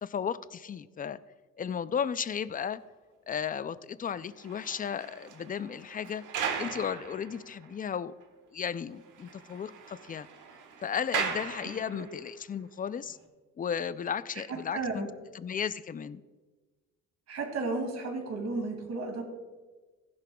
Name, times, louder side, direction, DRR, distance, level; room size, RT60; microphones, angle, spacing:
voice 1, 0.0-1.2 1.6-2.8 3.3-6.2 6.6-8.1 8.5-10.3 10.8-13.2 13.6-15.1 15.3-16.2, left 7 dB, 30° left, 15 dB, 0.4 m, -34 dB
sound 1, 4.2-7.9 8.2-8.3 8.7-8.8 9.0-12.3 13.0-13.2, right 6 dB, 80° right, 1.4 m, -38 dB
voice 2, 14.7-15.1 17.3-19.3, right 3 dB, 55° right, 2 dB, 2.4 m, -33 dB
15.0 x 10.5 x 2.3 m, 1.3 s
cardioid pair, 90°, 30 cm